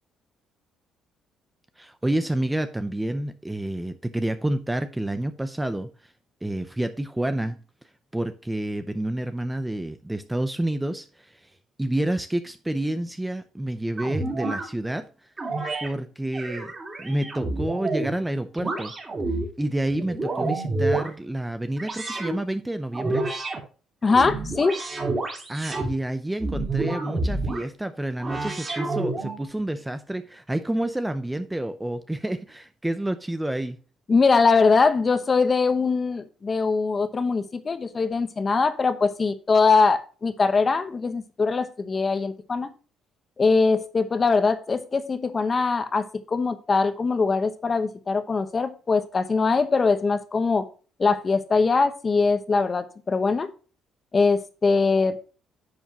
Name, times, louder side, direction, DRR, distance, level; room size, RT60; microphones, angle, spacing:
voice 1, 1.8-6.1 6.4-7.6 8.1-11.5 11.8-15.3 15.8-16.7 17.0-18.9 19.6-23.3 25.5-33.8, right 1 dB, 5° right, 0.6 m, -29 dB
sound 1, 14.0-14.7 15.4-15.9 16.3-18.1 18.6-19.5 19.9-21.1 21.8-22.4 22.9-23.6 24.0-25.9 26.4-27.6 28.2-29.4, right 2 dB, 25° right, 3.2 m, -29 dB
voice 2, 24.0-24.8 34.1-42.7 43.4-50.7 51.0-53.5 54.1-55.2, left 4 dB, 25° left, 1.1 m, -22 dB
10.0 x 7.1 x 2.9 m
cardioid pair, 135°, 0 cm